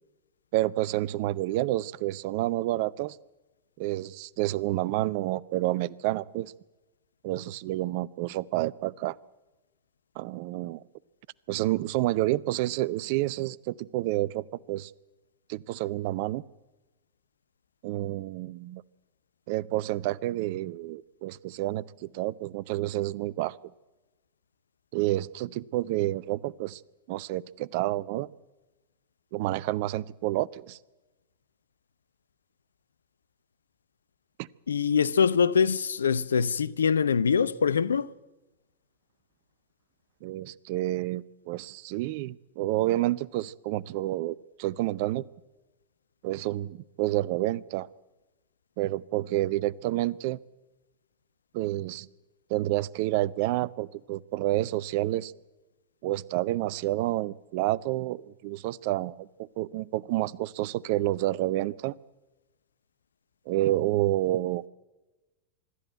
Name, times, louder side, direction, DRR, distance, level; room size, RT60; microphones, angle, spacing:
voice 1, 0.5-3.2 3.8-6.5 7.2-9.2 10.2-10.8 11.5-14.9 15.5-16.4 17.8-18.8 19.5-23.5 24.9-26.8 27.1-28.3 29.3-30.8 40.2-45.2 46.2-47.9 48.8-50.4 51.5-52.1 52.5-55.3 56.0-61.9 63.5-64.6, right 16 dB, 50° right, 0.6 m, -29 dB
voice 2, 34.7-38.1, left 6 dB, 75° left, 0.7 m, -24 dB
24.5 x 12.5 x 9.1 m
figure-of-eight pair, 90°, 0 cm